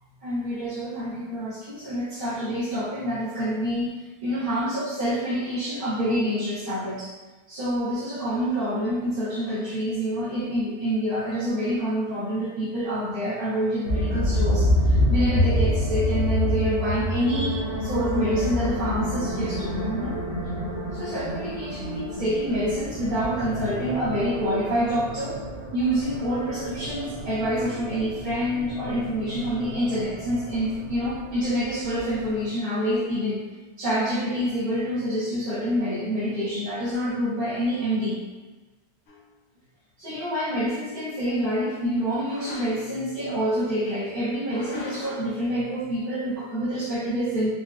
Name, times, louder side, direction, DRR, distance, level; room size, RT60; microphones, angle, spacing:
voice 1, 0.2-7.1 7.5-20.1 20.9-25.4 25.7-33.4 33.8-38.2 40.0-47.5, equal, 50° right, -11 dB, 0.7 m, -27 dB
sound 1, 13.9-32.4, left 1 dB, 80° right, 1.4 m, -28 dB
sound 2, 39.1-39.2 42.2-43.0 44.4-45.3, left 3 dB, 70° left, 0.9 m, -39 dB
4.0 x 2.2 x 2.3 m, 1.2 s
omnidirectional pair, 1.9 m